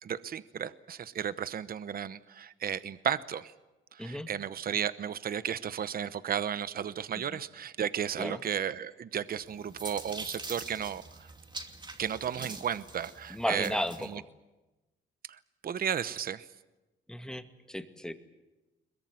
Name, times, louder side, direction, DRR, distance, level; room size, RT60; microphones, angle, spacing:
voice 1, 0.0-3.5 3.9-11.3 12.0-14.2 15.3-16.5, right 8 dB, 50° right, 15 dB, 0.9 m, -34 dB
sound 1, 9.3-14.1, right 3 dB, 20° right, 2.6 m, -44 dB
voice 2, 13.3-14.3 17.1-18.1, left 1 dB, 5° left, 7 dB, 2.0 m, -34 dB
22.0 x 21.5 x 9.5 m, 1.1 s
cardioid pair, 90°, 20 cm